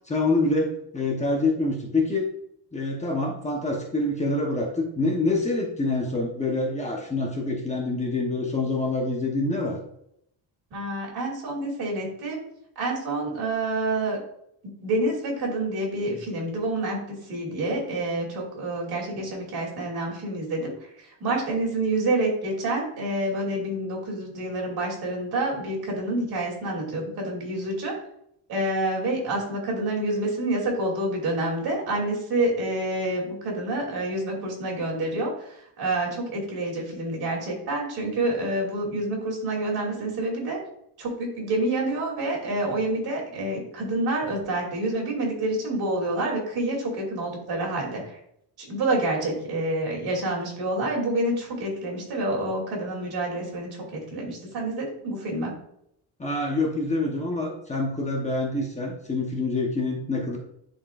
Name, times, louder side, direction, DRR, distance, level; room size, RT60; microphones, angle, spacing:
voice 1, 0.1-2.3 2.7-9.8 56.2-60.4, left 2 dB, 15° left, -1 dB, 0.9 m, -26 dB
voice 2, 10.7-12.4 12.8-14.2 14.8-17.0 17.3-20.7 21.2-27.9 28.5-40.6 41.0-48.0 48.7-55.5, right 2 dB, 60° right, -2 dB, 2.8 m, -28 dB
11.0 x 4.5 x 2.4 m, 0.74 s
cardioid pair, 175°, 41 cm